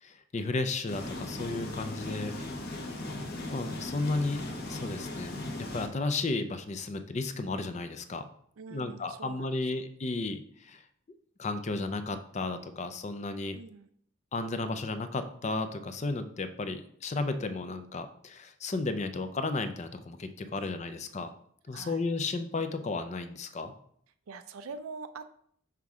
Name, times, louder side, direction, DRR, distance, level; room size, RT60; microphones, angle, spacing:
voice 1, 0.0-2.4 3.5-4.4 4.7-8.3 8.7-10.8 11.4-13.6 14.3-21.3 21.7-23.7, left 3 dB, 35° left, 8 dB, 0.5 m, -33 dB
sound 1, 0.9-5.9, left 2 dB, 50° left, 1.0 m, -38 dB
voice 2, 8.6-9.5 9.7-9.9 13.5-13.9 20.5-21.2 21.7-22.0 24.3-25.4, right 4 dB, 85° right, 9 dB, 0.4 m, -45 dB
5.9 x 3.5 x 4.8 m, 0.64 s
head